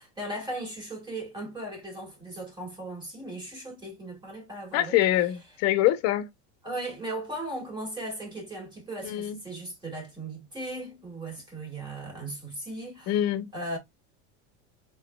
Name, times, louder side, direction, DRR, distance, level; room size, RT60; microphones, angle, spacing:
voice 1, 0.0-5.0 6.6-13.2 13.5-13.8, right 1 dB, 15° right, 2.3 m, -37 dB
voice 2, 4.7-6.3 9.0-9.4 13.1-13.5, left 13 dB, 50° left, 0.9 m, -24 dB
4.1 x 4.1 x 2.3 m
cardioid pair, 165°, 34 cm